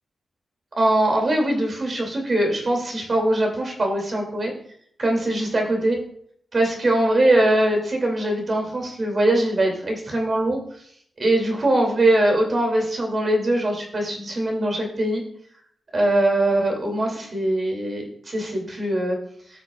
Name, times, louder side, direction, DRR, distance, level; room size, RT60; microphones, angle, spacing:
voice 1, 0.8-4.5 5.0-6.0 6.5-10.6 11.2-15.2 15.9-19.2, right 1 dB, 40° right, 1 dB, 2.5 m, -22 dB
15.0 x 6.4 x 2.4 m, 0.64 s
wide cardioid pair, 130°, 0 cm